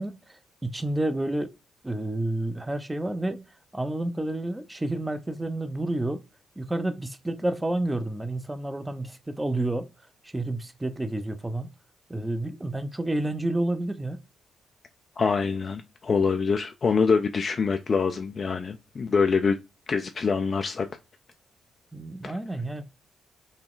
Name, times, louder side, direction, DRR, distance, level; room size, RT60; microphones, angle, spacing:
voice 1, 0.0-1.5 1.8-3.5 3.7-6.2 6.6-9.9 10.2-11.7 12.1-14.2 21.9-22.8, right 1 dB, 15° right, 0.6 m, -30 dB
voice 2, 15.2-19.6 19.9-20.9 22.2-22.3, left 5 dB, 50° left, 0.4 m, -25 dB
3.9 x 2.3 x 3.7 m
supercardioid pair, 55°, 0 cm